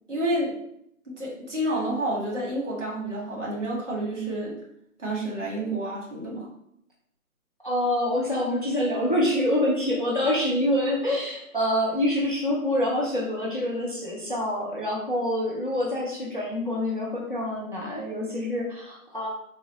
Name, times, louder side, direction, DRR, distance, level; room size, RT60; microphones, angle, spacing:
voice 1, 0.1-0.5 1.2-4.6 5.0-6.5, right 1 dB, 55° right, -4 dB, 1.2 m, -29 dB
voice 2, 7.6-19.3, left 1 dB, 35° left, -3 dB, 0.5 m, -26 dB
3.7 x 2.1 x 2.8 m, 0.75 s
figure-of-eight pair, 170°, 43 cm